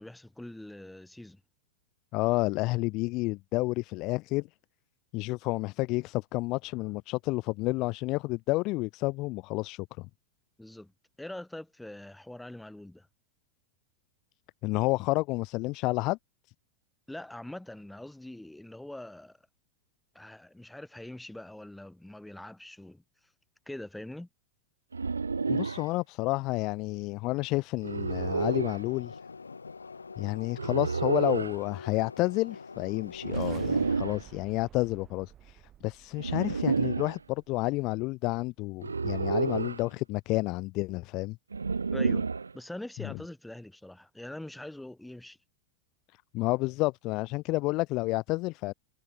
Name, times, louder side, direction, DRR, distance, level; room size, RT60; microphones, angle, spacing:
voice 1, 0.0-1.4 10.6-10.9 11.2-13.1 17.1-19.4 20.1-23.0 23.7-24.3 41.9-42.3 42.5-45.4, left 1 dB, 5° left, 4.5 m, -43 dB
voice 2, 2.1-4.5 5.1-10.1 14.6-16.2 25.5-29.2 30.2-41.4 43.0-43.2 46.3-48.7, left 22 dB, 40° left, 0.4 m, -30 dB
sound 1, 24.9-25.9 27.8-28.8 30.6-31.6 33.2-34.2 36.2-37.2 38.8-39.9 41.5-42.5, right 4 dB, 75° right, 1.1 m, -30 dB
sound 2, 28.2-34.0, left 4 dB, 75° left, 1.9 m, -45 dB
sound 3, 33.1-38.0, right 11 dB, 30° right, 6.5 m, -53 dB
figure-of-eight pair, 90°, 0 cm